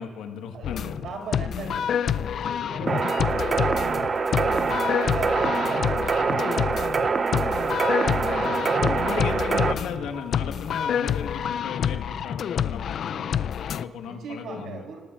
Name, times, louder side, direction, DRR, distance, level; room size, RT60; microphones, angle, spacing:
voice 1, 0.0-1.0 8.3-8.6 8.8-14.8, left 6 dB, 90° left, 5 dB, 1.4 m, -36 dB
voice 2, 0.5-4.5 4.9-7.5 14.0-15.0, right 4 dB, 75° right, 1 dB, 3.1 m, -40 dB
sound 1, 0.6-13.8, left 8 dB, 65° left, 0.4 m, -28 dB
sound 2, 2.9-9.7, right 4 dB, 40° right, 0.7 m, -25 dB
29.0 x 18.5 x 2.5 m, 1.5 s
cardioid pair, 90°, 0 cm